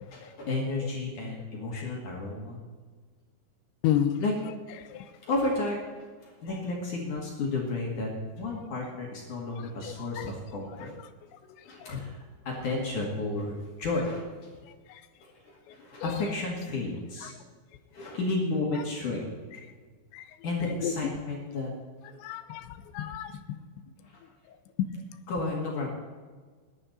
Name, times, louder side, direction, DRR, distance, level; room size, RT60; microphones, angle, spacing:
voice 1, 0.1-2.6 4.2-4.3 5.2-5.8 6.2-10.9 11.6-14.2 15.4-17.3 17.9-19.3 20.4-21.7 25.3-25.9, left 2 dB, 50° left, -2 dB, 3.0 m, -32 dB
voice 2, 3.8-4.2 9.8-10.3 20.1-20.2 20.8-20.9 22.2-22.6 22.9-23.3, left 10 dB, 90° left, 9 dB, 3.1 m, -28 dB
19.5 x 11.0 x 4.2 m, 1.5 s
omnidirectional pair, 5.2 m